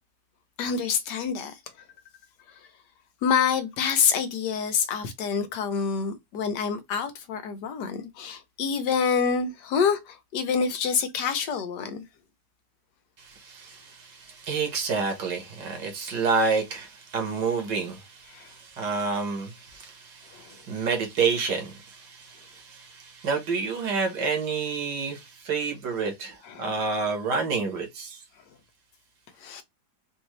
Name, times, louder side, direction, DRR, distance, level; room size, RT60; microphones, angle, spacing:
voice 1, 0.6-1.6 3.2-12.0 18.3-18.5 20.3-20.6 26.4-26.7 29.4-29.6, left 6 dB, 80° left, 1.3 m, -27 dB
voice 2, 13.2-28.2, right 4 dB, 80° right, 1.9 m, -29 dB
4.3 x 2.7 x 3.0 m
omnidirectional pair, 1.8 m